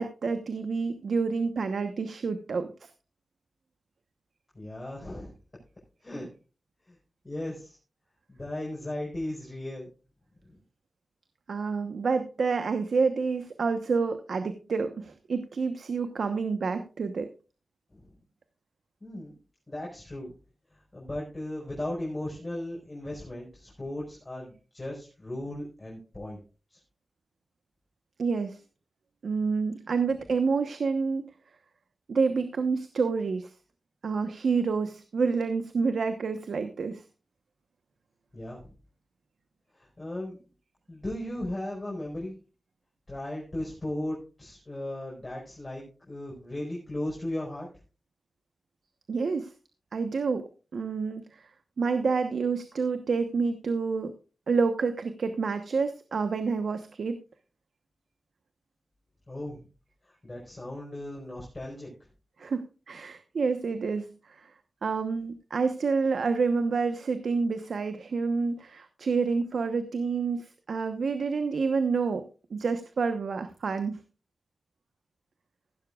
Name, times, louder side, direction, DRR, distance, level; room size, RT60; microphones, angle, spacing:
voice 1, 0.0-2.9 11.5-17.3 28.2-28.6 29.2-31.2 32.1-33.5 34.0-37.0 49.1-49.5 49.9-50.4 50.7-51.5 51.8-54.1 54.5-57.2 62.4-64.5 64.8-72.2 72.5-74.0, right 4 dB, 85° right, 8 dB, 1.0 m, -28 dB
voice 2, 4.5-5.3 6.0-6.3 6.9-7.0 7.2-7.8 8.3-9.9 10.4-10.5 17.9-18.1 19.0-19.3 19.7-20.3 20.7-26.4 26.7-26.8 38.3-38.7 39.7-40.4 40.9-42.4 43.1-47.7 59.3-59.6 60.0-61.9, left 1 dB, 25° left, -3 dB, 4.8 m, -36 dB
15.5 x 12.0 x 2.4 m, 0.34 s
wide cardioid pair, 95°, 0 cm